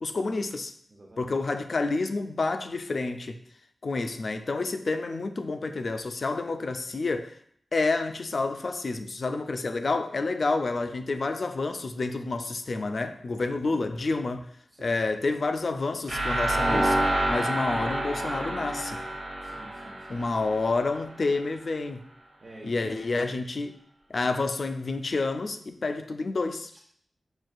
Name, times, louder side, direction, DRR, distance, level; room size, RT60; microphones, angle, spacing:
voice 1, 0.0-0.7 1.2-3.4 3.8-7.4 7.7-14.5 14.8-17.0 17.3-19.0 20.1-22.0 22.6-23.8 24.1-26.7, left 3 dB, 60° left, 0.3 m, -29 dB
voice 2, 0.9-1.3 13.5-13.8 14.7-15.2 19.4-20.2 22.4-22.9 26.7-26.8, right 2 dB, 45° right, 0.6 m, -48 dB
sound 1, 16.1-21.0, right 1 dB, 65° right, 1.2 m, -28 dB
6.1 x 2.3 x 2.5 m
wide cardioid pair, 80°, 0 cm